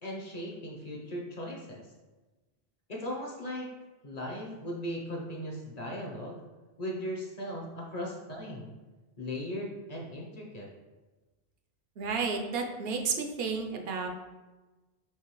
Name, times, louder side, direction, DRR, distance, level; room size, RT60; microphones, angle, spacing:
voice 1, 0.0-1.8 2.9-3.7 4.0-6.4 6.8-8.7 9.2-10.7, equal, 45° left, -1 dB, 0.7 m, -38 dB
voice 2, 12.0-14.1, right 5 dB, 75° right, 3 dB, 0.8 m, -32 dB
4.7 x 3.2 x 3.0 m, 1.2 s
omnidirectional pair, 1.1 m